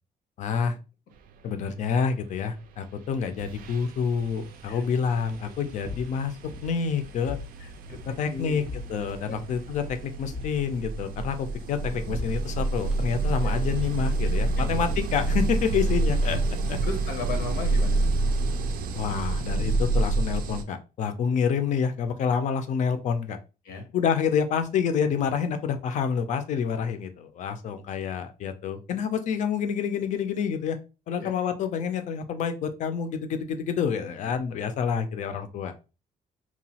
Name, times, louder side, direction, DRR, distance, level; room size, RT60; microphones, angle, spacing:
voice 1, 0.4-0.8 1.4-6.3 6.6-7.4 8.2-8.6 8.9-16.8 18.9-23.4 23.9-30.8 31.1-35.7, left 6 dB, 50° left, 9 dB, 0.4 m, -28 dB
sound 1, 2.8-3.0 3.4-20.6, right 2 dB, 65° right, 0.4 m, -29 dB
sound 2, 5.2-15.8, left 3 dB, ahead, 0.5 m, -44 dB
voice 2, 7.6-8.6 9.3-9.4 13.4-13.5 14.6-14.7 16.8-18.0 23.6-23.9 31.2-31.4, left 4 dB, 85° left, 4 dB, 0.8 m, -36 dB
2.9 x 2.3 x 2.8 m, 0.31 s
cardioid pair, 180°, 16 cm